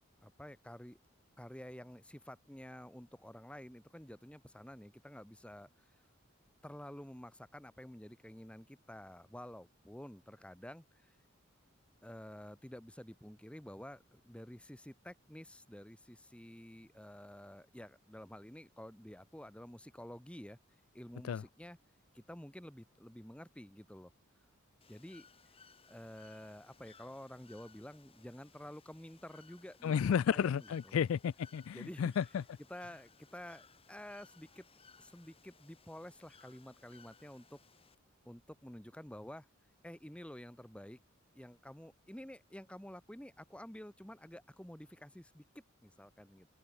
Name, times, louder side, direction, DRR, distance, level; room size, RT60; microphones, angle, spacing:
voice 1, 0.2-1.0 1.4-5.9 6.6-11.1 12.0-20.6 20.9-21.8 22.1-24.1 24.9-25.3 25.9-31.0 31.7-32.1 32.7-34.6 35.0-37.6 38.2-39.5 39.8-41.0 41.3-45.4 45.8-46.5, equal, 5° left, 1.1 m, -50 dB
Bird / Water, 24.8-38.0, left 5 dB, 30° left, 5.9 m, -63 dB
voice 2, 29.8-32.4, left 7 dB, 85° left, 0.3 m, -32 dB
open air
head